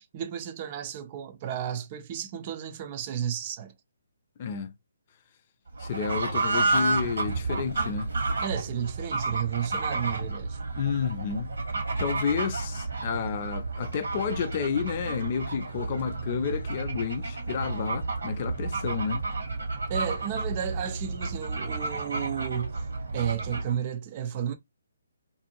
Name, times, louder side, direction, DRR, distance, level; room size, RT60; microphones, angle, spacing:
voice 1, 0.0-3.7 8.4-10.6 10.9-11.0 19.9-24.5, right 9 dB, 35° right, 0.5 m, -33 dB
voice 2, 4.4-4.7 5.8-8.1 9.7-9.8 10.8-11.5 12.0-19.3, left 7 dB, 40° left, 0.4 m, -31 dB
Fowl / Bird, 5.7-23.8, right 3 dB, 75° right, 1.3 m, -31 dB
2.6 x 2.5 x 2.8 m
figure-of-eight pair, 145°, 0 cm